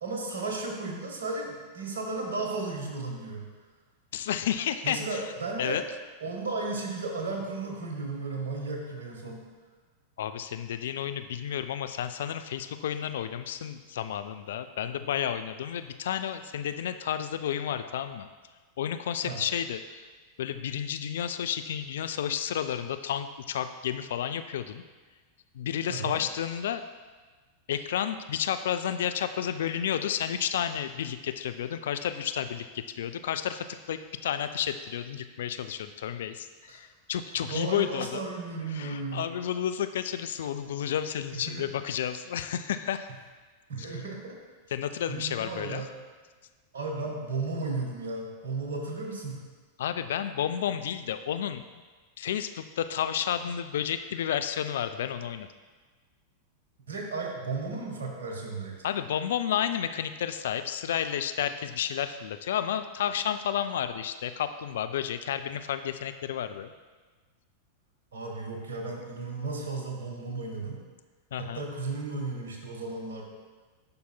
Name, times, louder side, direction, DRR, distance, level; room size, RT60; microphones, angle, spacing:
voice 1, 0.0-3.4 4.8-5.8 6.2-9.4 19.2-19.4 25.9-26.2 36.7-36.8 37.5-39.3 41.3-41.6 43.7-44.4 45.1-45.9 46.7-49.4 56.9-58.8 68.1-70.8 71.4-73.2, right 3 dB, 65° right, 1 dB, 1.2 m, -34 dB
voice 2, 4.1-5.2 5.6-5.8 10.2-18.3 18.8-20.1 20.4-24.8 25.5-26.8 27.7-38.2 38.7-43.1 43.8-43.9 44.7-45.8 49.8-51.6 52.2-55.5 58.8-66.7 71.3-71.7, left 9 dB, 60° left, 10 dB, 0.3 m, -31 dB
10.5 x 5.4 x 2.2 m, 1.4 s
figure-of-eight pair, 90°, 0 cm